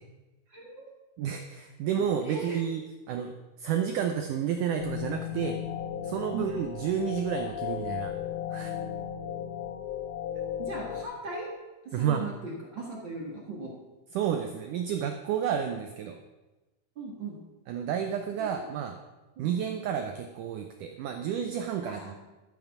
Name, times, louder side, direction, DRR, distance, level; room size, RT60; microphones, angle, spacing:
voice 1, 0.5-0.9 1.9-2.6 6.3-6.5 10.6-11.5 11.8-13.7 16.9-17.4 18.4-18.7 19.4-19.5 21.8-22.2, right 2 dB, 50° right, -3 dB, 1.5 m, -39 dB
voice 2, 1.2-2.8 3.1-3.3 3.6-5.6 6.0-8.1 8.5-8.7 11.9-12.3 14.1-16.2 17.7-19.0 19.4-22.0, right 8 dB, 85° right, 6 dB, 1.8 m, -30 dB
sound 1, 4.8-11.0, left 9 dB, 75° left, 2.8 m, -35 dB
12.5 x 7.2 x 5.9 m, 1.1 s
omnidirectional pair, 4.5 m